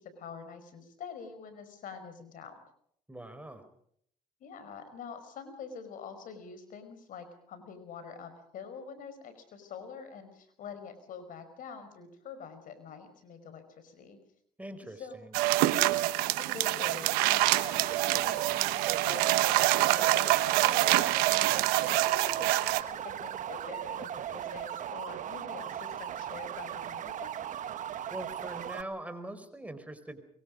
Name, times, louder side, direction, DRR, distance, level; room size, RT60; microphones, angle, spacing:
voice 1, 0.0-2.6 3.3-3.6 4.4-14.2 15.0-15.1 16.4-21.5 21.9-27.3, left 5 dB, 65° left, 10 dB, 5.3 m, -45 dB
voice 2, 3.1-3.6 14.6-15.3 28.1-30.2, right 1 dB, 10° right, 9 dB, 4.7 m, -42 dB
sound 1, 15.3-22.8, right 17 dB, 85° right, 1.2 m, -26 dB
sound 2, 17.4-28.8, right 10 dB, 60° right, 1.4 m, -38 dB
24.5 x 23.0 x 5.3 m, 0.67 s
supercardioid pair, 70°, 15 cm